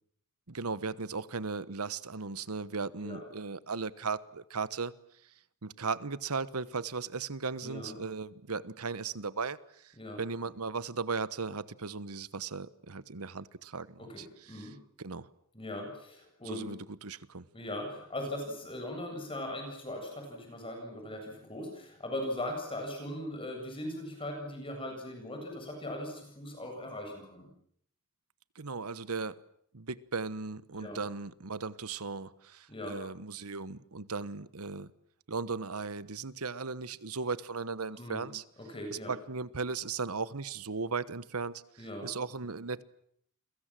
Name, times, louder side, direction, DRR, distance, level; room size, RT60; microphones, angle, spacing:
voice 1, 0.5-4.9 5.6-15.3 16.4-17.4 28.5-29.4 29.7-34.9 35.3-38.4 38.9-42.8, right 4 dB, 90° right, 1.2 m, -37 dB
voice 2, 7.6-7.9 10.0-10.2 14.0-14.7 15.5-16.7 17.5-27.5 30.8-31.0 32.7-33.0 38.0-38.3 38.7-39.1 41.8-42.1, left 1 dB, 25° left, 7.8 m, -39 dB
29.5 x 23.0 x 7.6 m
head